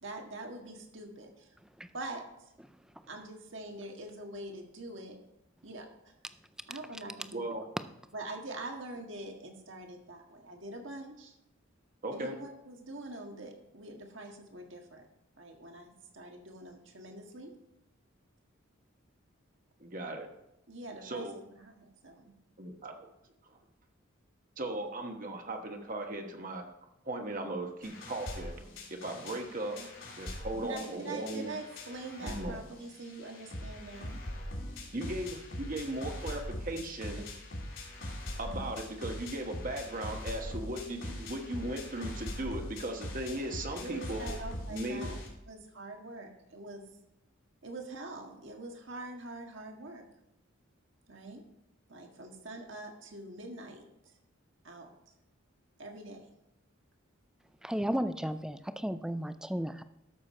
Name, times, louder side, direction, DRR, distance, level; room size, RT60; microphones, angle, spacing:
voice 1, 0.0-1.5 1.9-2.2 3.1-5.2 5.6-6.1 6.7-7.6 8.1-11.3 12.1-15.1 15.4-17.5 20.7-22.3 29.7-29.9 30.6-34.2 43.2-43.5 43.8-45.2 45.5-46.8 47.6-50.0 51.1-51.4 51.9-53.8 54.6-54.9 55.8-56.3, right 2 dB, 65° right, 3 dB, 1.6 m, -44 dB
voice 2, 7.3-7.6 12.0-12.4 19.8-20.3 21.0-21.3 22.6-22.9 23.5-23.6 24.6-26.6 27.0-28.6 28.9-31.5 32.2-32.5 34.9-37.2 38.4-44.3 44.7-45.1, right 1 dB, 40° right, 3 dB, 1.2 m, -37 dB
sound 1, 27.8-45.3, left 1 dB, 75° left, 2.8 m, -42 dB
voice 3, 57.6-59.8, equal, 5° right, 11 dB, 0.4 m, -34 dB
12.5 x 6.7 x 4.3 m, 0.83 s
head